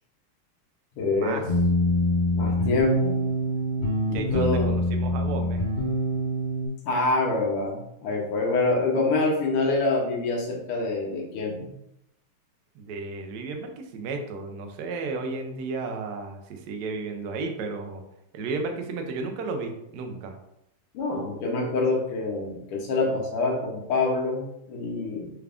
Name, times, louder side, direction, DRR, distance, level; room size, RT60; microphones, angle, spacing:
voice 1, 1.0-1.4 2.3-3.2 4.1-4.8 6.9-11.7 20.9-25.3, left 3 dB, 85° left, -1 dB, 1.8 m, -26 dB
sound 1, 1.5-6.7, equal, 45° left, 0.9 m, -25 dB
voice 2, 4.1-5.6 12.7-18.0 18.3-20.3, right 3 dB, 85° right, 4 dB, 0.8 m, -33 dB
4.5 x 2.4 x 3.4 m, 0.80 s
omnidirectional pair, 2.4 m